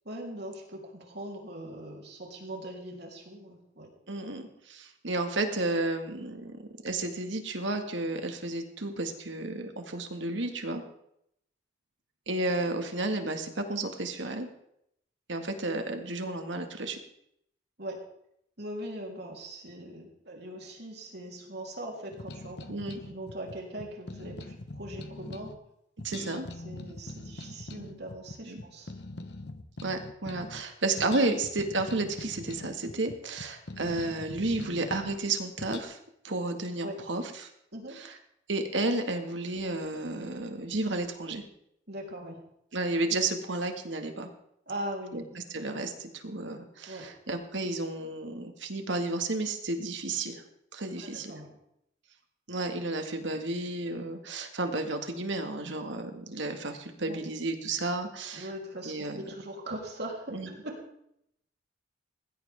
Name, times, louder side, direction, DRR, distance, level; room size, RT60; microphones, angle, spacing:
voice 1, 0.1-3.9 17.8-18.1 18.6-25.6 26.6-28.9 36.8-37.0 37.7-38.0 41.9-42.4 44.7-45.5 46.9-47.1 51.0-51.6 57.1-57.2 58.3-60.8, right 1 dB, 55° right, 0 dB, 3.8 m, -41 dB
voice 2, 4.1-10.8 12.3-14.5 15.3-17.0 22.7-23.0 26.0-26.5 28.4-28.6 29.8-36.0 36.2-37.5 37.9-38.1 38.5-41.4 42.7-44.3 45.1-45.2 45.5-50.4 50.7-51.3 52.5-58.5 58.8-59.2 60.3-60.5, right 2 dB, 75° right, 5 dB, 2.0 m, -32 dB
sound 1, 22.1-25.6 26.0-30.7 31.0-35.2 35.6-35.8, left 2 dB, 60° left, 1.2 m, -42 dB
20.0 x 15.5 x 3.7 m, 0.75 s
head